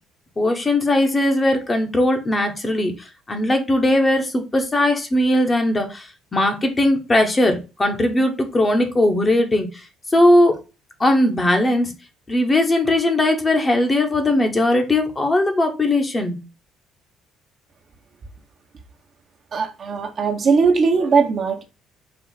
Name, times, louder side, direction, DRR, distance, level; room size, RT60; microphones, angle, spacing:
voice 1, 0.4-9.8 10.1-10.5 11.0-11.9 12.3-16.4, left 1 dB, 20° left, 0.9 m, -19 dB
voice 2, 19.5-21.6, right 5 dB, 45° right, 0.9 m, -19 dB
4.4 x 2.4 x 3.9 m
cardioid pair, 110°, 0 cm